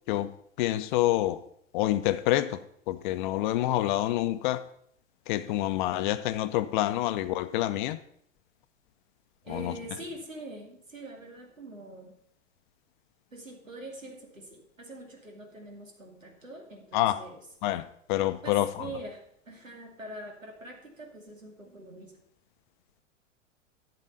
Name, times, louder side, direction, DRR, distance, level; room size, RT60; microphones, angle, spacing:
voice 1, 0.6-1.4 1.7-4.6 5.3-8.0 9.5-9.7 16.9-17.2 17.6-18.9, left 14 dB, 40° left, 0.7 m, -27 dB
voice 2, 9.4-12.2 13.3-17.4 18.4-22.2, right 1 dB, 85° right, 2.5 m, -44 dB
10.5 x 7.7 x 5.5 m
figure-of-eight pair, 100°, 38 cm